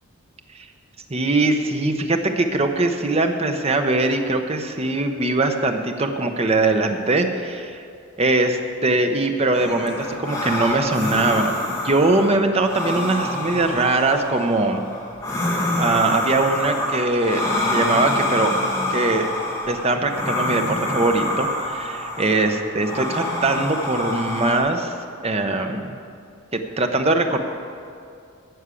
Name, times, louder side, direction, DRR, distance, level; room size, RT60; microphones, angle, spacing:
voice 1, 1.1-7.8 8.2-14.8 15.8-18.5 18.9-19.3 19.7-24.9 25.2-26.0 26.5-27.4, right 2 dB, 30° right, 5 dB, 0.8 m, -21 dB
sound 1, 9.5-24.6, left 1 dB, 15° left, 2.2 m, -26 dB
12.5 x 6.5 x 8.3 m, 2.4 s
head